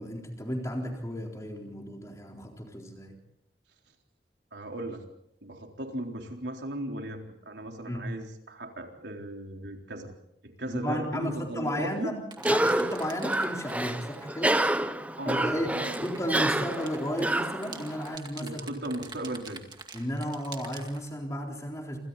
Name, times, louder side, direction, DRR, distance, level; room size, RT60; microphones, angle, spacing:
voice 1, 0.0-3.2 7.9-8.1 10.7-12.2 12.5-14.6 15.2-18.7 19.9-22.0, equal, 15° left, 1 dB, 3.9 m, -34 dB
voice 2, 4.5-5.0 5.4-10.1 10.4-12.1 15.2-16.0 18.4-19.6, right 1 dB, 80° right, 2 dB, 3.8 m, -37 dB
sound 1, 12.3-14.3 15.8-21.1, right 5 dB, 25° right, 2.2 m, -46 dB
Cough, 12.4-18.2, right 1 dB, 10° right, 0.8 m, -29 dB
27.5 x 27.0 x 4.1 m, 0.77 s
head